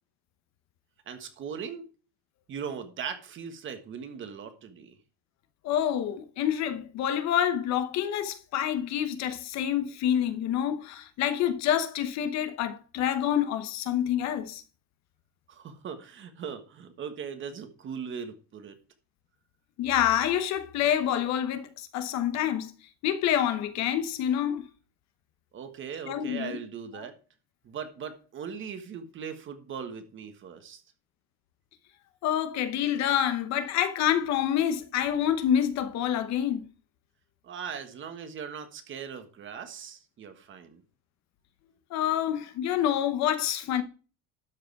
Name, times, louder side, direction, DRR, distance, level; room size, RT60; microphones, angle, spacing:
voice 1, 1.1-1.9 2.5-5.0 15.5-18.8 25.5-27.1 27.6-30.8 37.4-40.8, right 7 dB, 30° right, 1.4 m, -39 dB
voice 2, 5.6-14.6 19.8-22.7 23.0-24.7 26.1-26.6 32.2-36.6 41.9-43.8, left 10 dB, 45° left, 0.9 m, -27 dB
12.0 x 4.9 x 4.6 m
cardioid pair, 165°, 37 cm